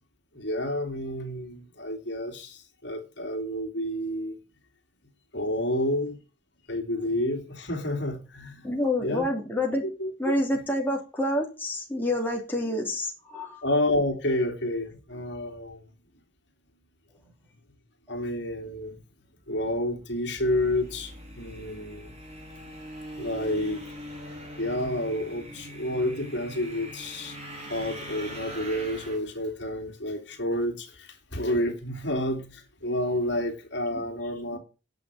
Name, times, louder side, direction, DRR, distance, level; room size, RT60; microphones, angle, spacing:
voice 1, 0.3-4.4 5.3-6.2 6.7-8.7 9.0-9.3 10.0-10.1 13.6-15.8 18.1-19.0 19.5-22.1 23.2-23.8 24.6-34.6, left 1 dB, 60° left, 2.9 m, -30 dB
voice 2, 8.6-9.8 10.2-13.6 33.9-34.0, left 1 dB, 10° left, 3.1 m, -28 dB
sound 1, 20.4-29.2, equal, 30° right, 4.0 m, -42 dB
11.0 x 6.3 x 9.0 m
head